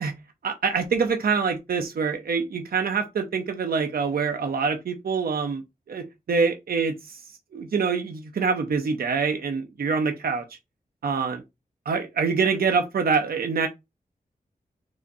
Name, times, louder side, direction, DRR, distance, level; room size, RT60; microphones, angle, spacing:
voice 1, 0.4-7.2 7.5-10.4 11.0-11.4 11.9-13.7, right 5 dB, 75° right, 0.7 m, -25 dB
4.8 x 2.7 x 4.1 m
wide cardioid pair, 115°, 15 cm